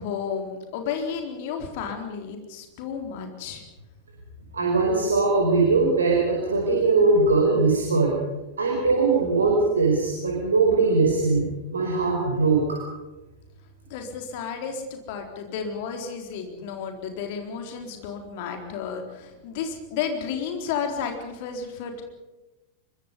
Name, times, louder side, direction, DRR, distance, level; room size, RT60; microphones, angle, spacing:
voice 1, 0.0-3.6 13.9-22.0, left 6 dB, 50° left, 4 dB, 4.0 m, -32 dB
voice 2, 4.5-8.1 8.6-11.4 11.7-12.8, right 3 dB, 70° right, -2 dB, 5.2 m, -21 dB
25.0 x 23.0 x 5.4 m, 1.1 s
figure-of-eight pair, 90°, 0 cm